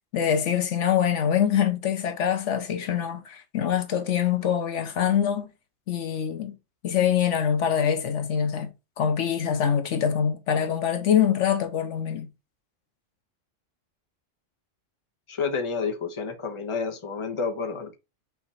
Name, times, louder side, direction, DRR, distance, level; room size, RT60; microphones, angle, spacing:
voice 1, 0.1-5.5 5.9-6.5 6.8-8.7 9.0-12.3, left 8 dB, 75° left, 1.1 m, -24 dB
voice 2, 15.3-18.0, left 5 dB, 25° left, 1.0 m, -30 dB
5.9 x 2.9 x 5.6 m
omnidirectional pair, 1.3 m